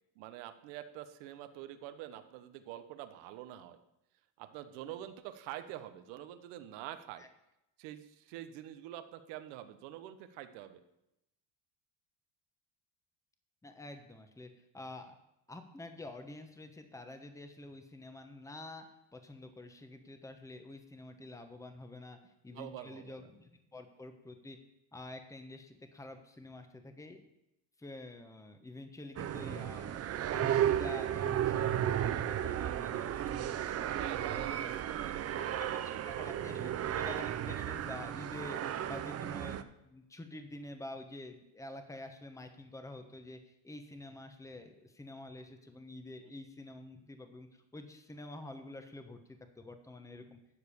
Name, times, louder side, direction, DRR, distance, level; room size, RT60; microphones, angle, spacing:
voice 1, 0.2-3.8 4.4-7.3 7.8-10.8 22.5-23.3 34.0-35.4 36.1-36.3, right 12 dB, 80° right, 10 dB, 1.1 m, -46 dB
voice 2, 13.6-15.2 15.5-18.9 19.1-24.6 24.9-27.2 27.8-30.0 30.3-33.9 34.2-34.9 35.8-50.4, left 2 dB, 5° left, 6 dB, 1.1 m, -48 dB
sound 1, 29.2-39.6, right 11 dB, 35° right, 0.6 m, -34 dB
12.0 x 4.9 x 7.1 m, 0.87 s
cardioid pair, 115°, 43 cm